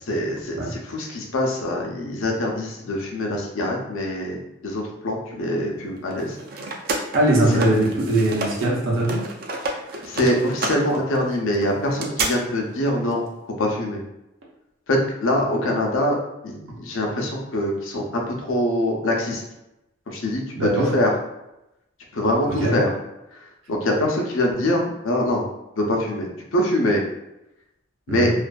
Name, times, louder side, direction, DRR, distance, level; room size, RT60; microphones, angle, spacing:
voice 1, 0.1-4.4 4.6-6.6 9.6-9.8 10.0-13.2 13.6-14.0 14.9-16.2 16.4-19.4 20.1-21.1 22.1-22.9 23.3-23.4 23.7-25.4 25.8-27.0 28.1-28.3, left 1 dB, 90° left, 0 dB, 0.5 m, -24 dB
sound 1, 6.1-8.7 9.0-12.3, right 3 dB, 50° right, 0.3 m, -30 dB
voice 2, 7.1-9.2 20.5-20.9 22.6-22.8 28.1-28.3, right 1 dB, 80° right, -3 dB, 0.8 m, -20 dB
2.5 x 2.5 x 2.2 m, 0.90 s
head